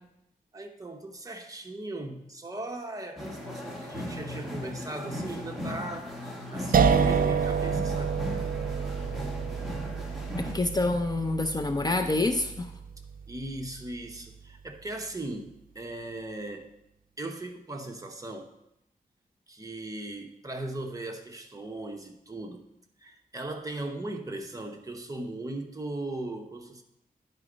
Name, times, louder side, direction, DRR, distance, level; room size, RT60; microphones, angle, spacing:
voice 1, 0.5-6.1 6.5-8.2 13.3-16.7 17.2-18.5 19.5-22.6 23.0-26.8, right 2 dB, 25° right, 3 dB, 0.9 m, -38 dB
sound 1, 3.2-10.5, left 1 dB, ahead, 1.4 m, -38 dB
sound 2, 6.7-13.7, right 6 dB, 70° right, 0.4 m, -28 dB
voice 2, 10.4-12.7, left 2 dB, 25° left, 5 dB, 0.5 m, -27 dB
9.8 x 4.4 x 5.0 m, 0.83 s
wide cardioid pair, 135°, 15 cm